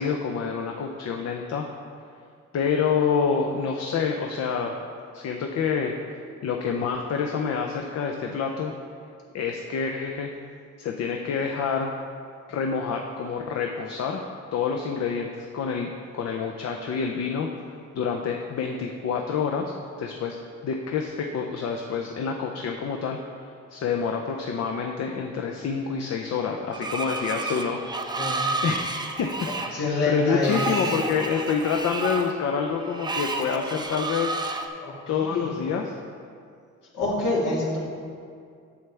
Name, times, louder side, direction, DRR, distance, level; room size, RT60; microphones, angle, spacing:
voice 1, 0.0-1.7 2.5-4.7 5.1-5.9 6.4-8.7 9.3-10.3 10.8-11.9 12.5-14.2 14.5-17.5 17.9-20.4 20.6-23.2 23.7-27.8 28.6-29.3 29.6-29.8 30.1-34.4 35.1-35.9, left 6 dB, 60° left, 2 dB, 0.6 m, -27 dB
Screech, 26.7-34.7, right 2 dB, 15° right, 0.5 m, -31 dB
voice 2, 28.1-28.5 29.7-30.7 34.8-35.5 36.9-37.8, left 2 dB, 75° left, -4 dB, 1.9 m, -26 dB
7.9 x 7.0 x 3.3 m, 2.3 s
cardioid pair, 90°, 30 cm